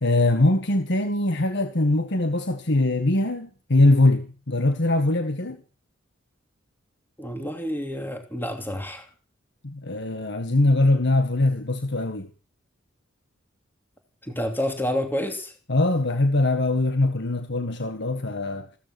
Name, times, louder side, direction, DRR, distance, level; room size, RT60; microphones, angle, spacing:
voice 1, 0.0-5.6 9.6-12.3 15.7-18.7, left 2 dB, 60° left, 1.7 m, -22 dB
voice 2, 7.2-9.1 14.2-15.5, equal, 10° left, 2.9 m, -29 dB
16.0 x 14.0 x 6.2 m
head